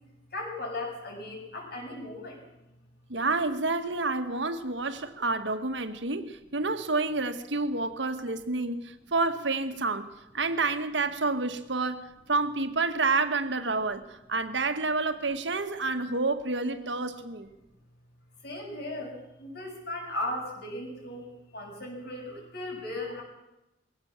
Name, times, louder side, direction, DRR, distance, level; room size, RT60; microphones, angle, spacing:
voice 1, 0.3-2.4 18.4-19.1 19.4-23.2, left 1 dB, 60° left, 7.4 m, -37 dB
voice 2, 3.1-17.5, right 3 dB, 80° right, 1.8 m, -29 dB
22.0 x 17.0 x 7.4 m
head